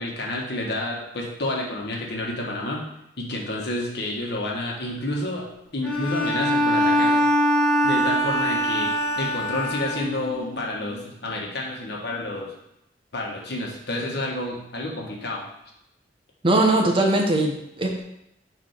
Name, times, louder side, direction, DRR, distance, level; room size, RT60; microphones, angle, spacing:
voice 1, 0.0-2.8 3.2-5.4 5.7-7.2 7.8-12.5 13.1-15.4, left 1 dB, 65° left, -1 dB, 1.4 m, -29 dB
Bowed string instrument, 5.8-10.4, equal, 5° left, 1.5 m, -22 dB
voice 2, 16.4-18.0, right 2 dB, 30° right, 1 dB, 0.9 m, -20 dB
6.1 x 3.4 x 5.8 m, 0.83 s
head